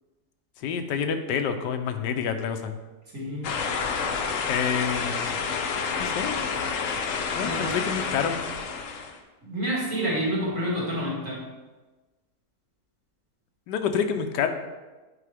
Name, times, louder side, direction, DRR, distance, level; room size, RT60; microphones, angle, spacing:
voice 1, 0.6-2.7 4.4-5.4 6.0-6.7 7.3-8.4 13.7-14.5, left 7 dB, 90° left, 7 dB, 1.3 m, -28 dB
voice 2, 3.1-3.5 7.4-7.8 9.4-11.4, equal, 50° right, -6 dB, 2.3 m, -28 dB
sound 1, 3.4-9.2, left 5 dB, 65° left, 0.9 m, -29 dB
8.4 x 4.6 x 3.4 m, 1.2 s
omnidirectional pair, 1.8 m